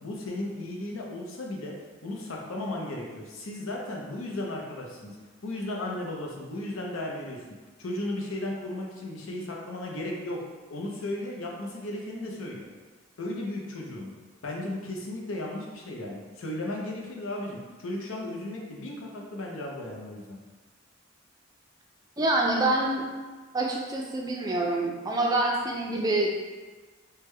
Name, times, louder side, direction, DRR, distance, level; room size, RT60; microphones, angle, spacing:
voice 1, 0.0-1.8 2.0-5.2 5.4-7.4 7.8-10.4 10.7-12.7 13.2-14.1 14.4-20.4, left 1 dB, 85° left, -1 dB, 0.6 m, -35 dB
voice 2, 22.2-23.1 23.5-26.3, right 2 dB, 20° right, -1 dB, 0.3 m, -26 dB
3.4 x 2.1 x 3.2 m, 1.3 s
head